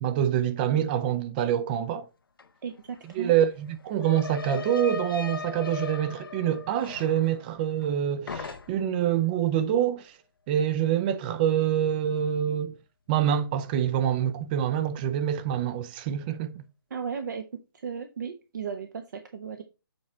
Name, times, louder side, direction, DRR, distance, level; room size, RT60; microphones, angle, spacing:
voice 1, 0.0-2.0 3.2-10.1 10.5-12.7 13.1-16.6, right 10 dB, 25° right, 0.5 m, -26 dB
sound 1, 2.4-2.5 2.7-8.0 8.3-9.0, left 5 dB, 70° left, 0.7 m, -38 dB
voice 2, 2.6-3.3 16.9-17.4 17.8-19.6, right 6 dB, 55° right, 0.9 m, -35 dB
7.8 x 4.1 x 4.3 m
figure-of-eight pair, 140°, 12 cm